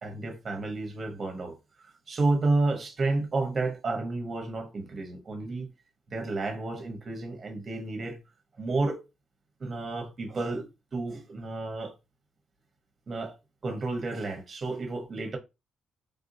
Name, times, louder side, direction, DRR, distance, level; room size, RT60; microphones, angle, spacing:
voice 1, 0.0-1.6 2.1-5.7 6.1-8.2 8.6-9.0 9.6-10.6 10.9-11.9 13.1-13.4 13.6-15.4, right 3 dB, 40° right, 0.9 m, -31 dB
3.5 x 2.6 x 2.6 m
cardioid pair, 90°, 0 cm